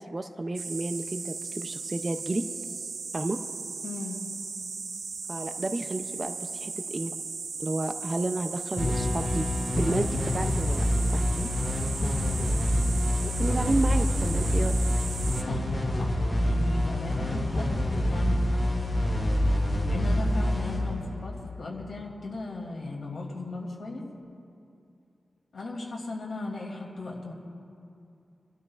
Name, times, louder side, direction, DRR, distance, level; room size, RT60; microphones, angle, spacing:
voice 1, 0.0-2.4 3.1-3.4 5.3-7.2 7.6-9.5 9.8-10.8 11.1-11.5 13.2-14.7, right 2 dB, 25° right, 7 dB, 0.5 m, -31 dB
sound 1, 0.5-15.4, right 4 dB, 85° right, 0.7 m, -37 dB
voice 2, 3.8-4.2 12.0-12.3 15.3-16.1 16.4-18.6 19.9-24.0 25.5-27.3, left 3 dB, 55° left, -2 dB, 2.7 m, -37 dB
sound 2, 8.8-22.1, left 1 dB, 20° left, 3.5 m, -27 dB
30.0 x 13.0 x 2.4 m, 2.6 s
wide cardioid pair, 150°, 0 cm